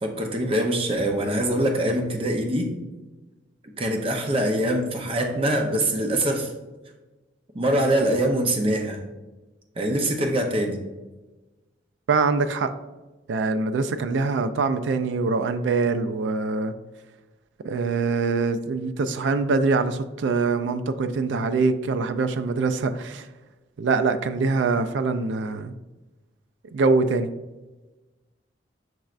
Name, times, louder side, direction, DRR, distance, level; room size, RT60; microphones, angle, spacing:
voice 1, 0.0-2.7 3.8-6.5 7.5-9.0 9.8-10.8, right 1 dB, 30° right, 3 dB, 0.6 m, -23 dB
voice 2, 12.1-12.7 13.3-16.7 17.6-23.3 23.8-25.7 26.7-27.3, right 4 dB, 80° right, 10 dB, 0.3 m, -24 dB
6.0 x 3.1 x 2.4 m, 1.1 s
head